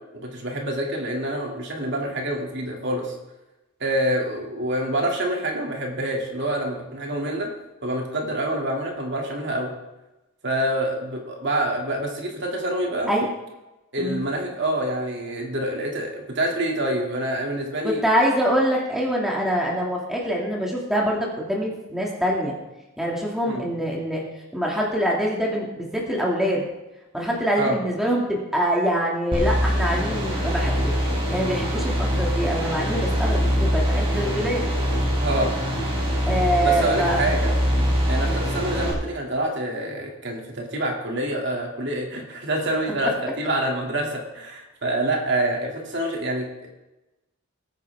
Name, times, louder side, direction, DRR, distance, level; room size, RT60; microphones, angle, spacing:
voice 1, 0.1-3.1 3.8-7.5 7.8-9.7 10.4-13.1 13.9-18.0 23.5-23.7 27.6-27.8 35.2-35.6 36.6-37.5 38.1-46.7, right 1 dB, 55° right, 0 dB, 2.8 m, -26 dB
voice 2, 17.8-22.6 23.0-24.2 24.5-26.7 27.1-30.9 31.3-34.6 36.3-37.3 37.8-38.0 43.0-43.1, equal, ahead, -3 dB, 2.4 m, -24 dB
sound 1, 29.3-38.9, equal, 25° right, 3.6 m, -23 dB
20.5 x 9.3 x 3.6 m, 1.0 s
head